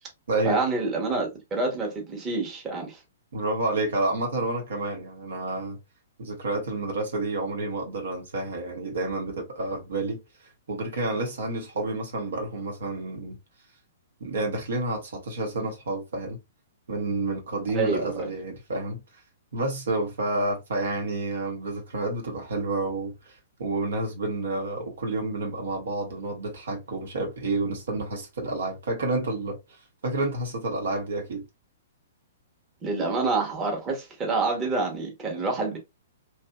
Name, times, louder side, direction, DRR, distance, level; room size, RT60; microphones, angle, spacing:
voice 1, 0.4-3.0 17.7-18.3 32.8-35.8, right 3 dB, 20° right, 0.9 m, -27 dB
voice 2, 3.3-5.8 6.2-10.2 10.7-13.4 14.2-16.4 16.9-19.0 19.5-29.6 30.0-31.4, right 2 dB, 65° right, 0.9 m, -29 dB
2.8 x 2.5 x 2.2 m
figure-of-eight pair, 115°, 0 cm